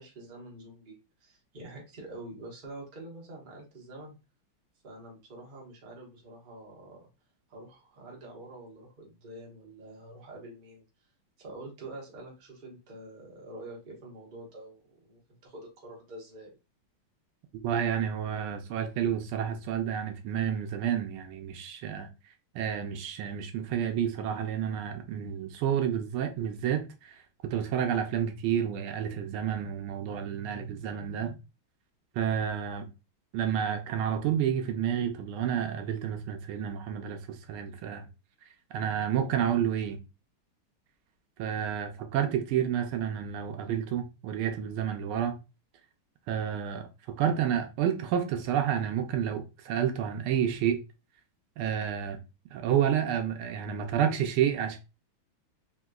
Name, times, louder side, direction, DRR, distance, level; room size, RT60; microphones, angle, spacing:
voice 1, 0.0-4.2 4.8-7.1 7.5-10.8 11.4-14.8 15.1-16.5, right 1 dB, 35° right, 0.8 m, -46 dB
voice 2, 17.6-22.1 22.5-31.3 32.1-32.9 33.3-38.1 38.7-40.0 41.4-45.4 46.3-50.8 51.6-52.2 52.5-54.8, right 9 dB, 80° right, 1.4 m, -30 dB
3.8 x 2.8 x 2.3 m
omnidirectional pair, 2.4 m